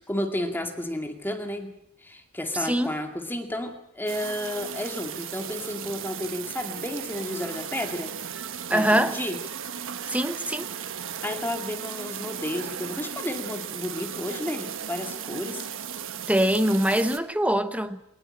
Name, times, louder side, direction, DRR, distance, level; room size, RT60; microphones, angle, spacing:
voice 1, 0.1-1.7 2.0-8.1 8.7-9.4 11.2-15.7, left 1 dB, 10° left, 4 dB, 2.3 m, -32 dB
voice 2, 2.6-2.9 8.7-9.2 10.1-10.7 16.3-18.0, right 1 dB, 5° right, 10 dB, 1.2 m, -23 dB
sound 1, 4.1-17.2, right 8 dB, 60° right, 1.3 m, -36 dB
20.5 x 19.5 x 8.8 m, 0.75 s
head